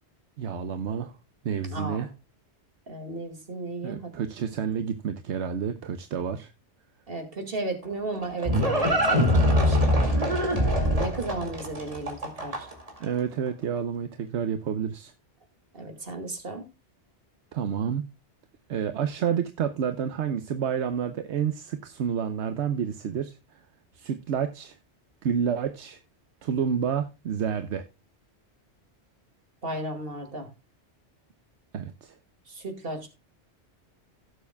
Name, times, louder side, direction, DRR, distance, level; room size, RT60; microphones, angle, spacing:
voice 1, 0.4-1.1 1.4-2.1 3.8-6.5 13.0-15.1 17.5-18.0 18.7-23.6 23.9-24.8 25.2-26.0 26.4-27.8 31.7-32.1, right 7 dB, 80° right, 1.1 m, -29 dB
voice 2, 1.7-2.1 2.9-4.1 7.1-9.9 10.5-12.7 15.7-16.7 29.6-30.5 32.5-33.1, right 2 dB, 55° right, 2.4 m, -34 dB
Livestock farm animals working animals, 7.8-12.9, equal, 30° right, 2.4 m, -23 dB
17.0 x 7.2 x 2.2 m
omnidirectional pair, 1.2 m